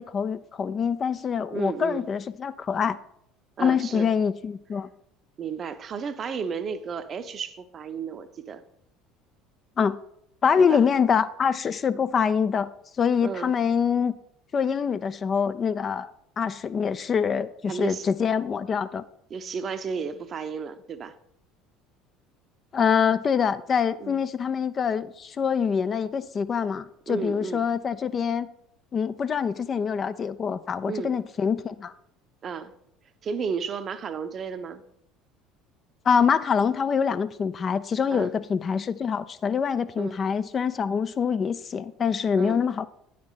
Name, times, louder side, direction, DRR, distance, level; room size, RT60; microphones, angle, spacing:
voice 1, 0.0-3.0 3.6-4.9 9.8-10.0 10.4-12.7 13.0-14.1 14.5-16.1 16.4-19.0 22.7-28.5 28.9-31.9 36.1-42.9, left 6 dB, 35° left, 13 dB, 0.4 m, -25 dB
voice 2, 1.5-2.1 3.6-4.1 5.4-8.6 10.6-10.8 13.2-13.5 17.7-18.1 19.3-21.1 24.0-24.2 27.1-27.7 30.9-31.2 32.4-32.7 33.2-34.8 38.1-38.3 40.0-40.2 42.4-42.7, right 6 dB, 35° right, 11 dB, 0.7 m, -33 dB
9.2 x 5.0 x 5.6 m, 0.71 s
figure-of-eight pair, 65°, 0 cm